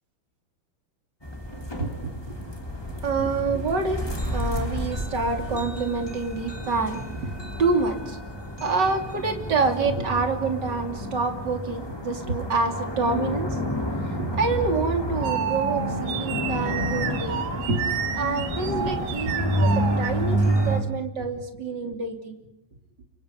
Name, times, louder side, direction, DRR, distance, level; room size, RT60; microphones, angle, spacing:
sound 1, 1.2-20.8, equal, 5° left, 2.8 m, -30 dB
voice 1, 1.8-2.5 2.9-8.2 8.6-13.6 13.9-17.4 17.7-22.4, right 4 dB, 30° right, 4 dB, 3.0 m, -27 dB
sound 2, 14.2-20.6, right 8 dB, 65° right, 3.4 m, -31 dB
30.0 x 25.0 x 5.3 m, 0.81 s
omnidirectional pair, 4.8 m